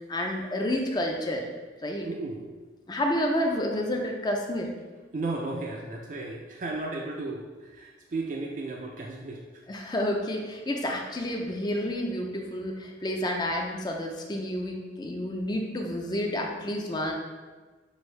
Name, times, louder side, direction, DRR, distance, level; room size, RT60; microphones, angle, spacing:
voice 1, 0.1-1.4 1.8-2.1 2.9-4.7 9.7-17.1, left 1 dB, 25° left, 1 dB, 0.4 m, -30 dB
voice 2, 2.0-2.5 5.1-9.6, right 2 dB, 45° right, 0 dB, 0.4 m, -34 dB
6.1 x 2.6 x 3.2 m, 1.3 s
head